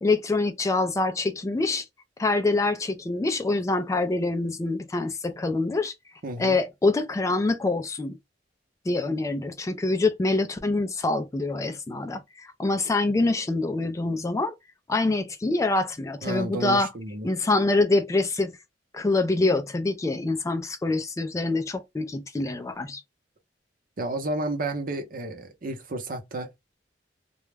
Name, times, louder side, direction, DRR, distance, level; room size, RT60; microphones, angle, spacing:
voice 1, 0.0-1.9 2.2-5.9 6.4-8.2 8.9-14.5 14.9-16.9 17.2-18.5 18.9-23.0, left 2 dB, 20° left, 0.3 m, -25 dB
voice 2, 6.2-6.6 16.2-17.3 24.0-26.5, right 1 dB, 50° right, 0.7 m, -31 dB
2.3 x 2.1 x 3.1 m
head